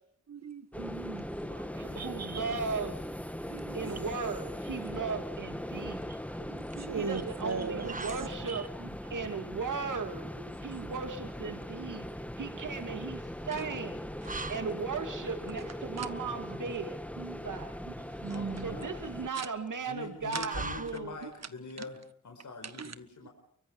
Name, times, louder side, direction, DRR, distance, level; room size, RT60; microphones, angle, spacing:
voice 1, 0.3-2.6 3.5-3.9 5.7-8.1 8.5-8.9 12.1-12.2 13.5-13.7 14.3-14.4 16.0-16.1 17.2-17.5 17.9-18.8 20.3-20.5 21.2-21.3 21.8-21.9 22.8-22.9, right 5 dB, 55° right, 1.8 m, -40 dB
sound 1, 0.7-19.3, equal, 5° left, 1.4 m, -40 dB
voice 2, 1.7-3.0 3.7-6.2 6.9-8.7 9.1-10.3 10.6-12.1 12.4-17.0 17.4-17.8 18.6-21.2, right 5 dB, 75° right, 2.5 m, -37 dB
sound 2, 4.8-21.5, right 3 dB, 25° right, 1.3 m, -47 dB
voice 3, 18.3-19.0 19.9-22.0 22.2-23.3, left 4 dB, 70° left, 5.0 m, -44 dB
29.5 x 24.0 x 4.8 m
wide cardioid pair, 100°, 31 cm